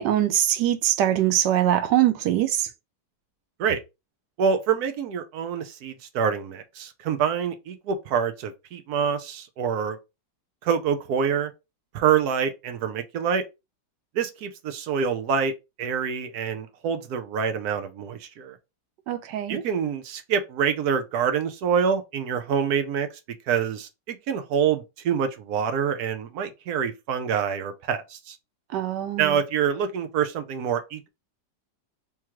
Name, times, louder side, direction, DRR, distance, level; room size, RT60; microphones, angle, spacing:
voice 1, 0.0-2.7 19.1-19.6 28.7-29.4, right 12 dB, 90° right, 1.2 m, -23 dB
voice 2, 4.4-10.0 10.6-11.5 11.9-13.4 14.1-15.5 15.8-18.6 19.5-23.1 23.5-28.4 29.2-31.1, right 7 dB, 70° right, 1.1 m, -26 dB
3.6 x 3.0 x 2.9 m
omnidirectional pair, 1.8 m